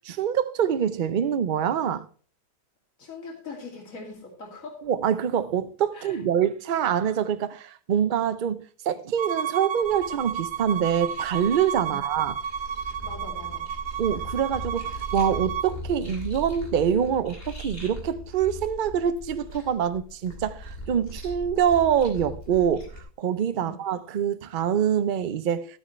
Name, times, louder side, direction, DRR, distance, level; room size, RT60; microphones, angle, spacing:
voice 1, 0.0-2.1 4.8-12.4 14.0-22.9 23.2-25.8, right 8 dB, 65° right, 0.5 m, -25 dB
voice 2, 3.0-4.8 5.9-6.2 11.9-12.0 13.0-13.7 23.6-23.8, left 3 dB, 55° left, 3.0 m, -41 dB
Bowed string instrument, 9.2-15.7, right 8 dB, 85° right, 1.4 m, -32 dB
sound 1, 9.8-23.0, equal, 35° left, 3.1 m, -40 dB
13.0 x 9.1 x 3.2 m
omnidirectional pair, 1.7 m